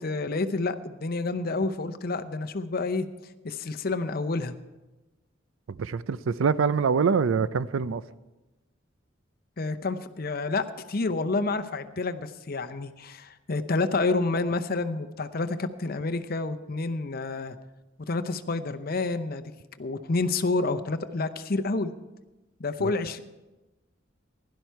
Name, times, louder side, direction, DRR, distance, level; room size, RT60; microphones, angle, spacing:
voice 1, 0.0-3.1 3.4-4.6 9.6-17.6 18.1-19.5 19.8-21.9 22.6-23.2, left 3 dB, 50° left, 0.7 m, -29 dB
voice 2, 5.7-8.0 22.8-22.9, right 5 dB, 90° right, 0.4 m, -25 dB
16.0 x 11.5 x 4.6 m
head